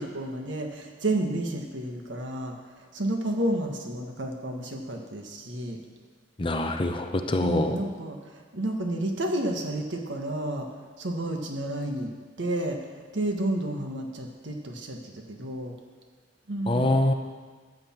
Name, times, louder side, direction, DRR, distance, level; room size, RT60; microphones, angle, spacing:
voice 1, 0.0-2.5 2.9-5.8 7.4-10.7 11.0-12.1 12.4-12.8 13.1-15.7 16.5-17.1, right 1 dB, 85° right, 3 dB, 1.4 m, -31 dB
voice 2, 6.4-7.7 16.7-17.1, left 1 dB, 30° left, 6 dB, 0.7 m, -24 dB
14.5 x 8.0 x 4.4 m, 1.5 s
head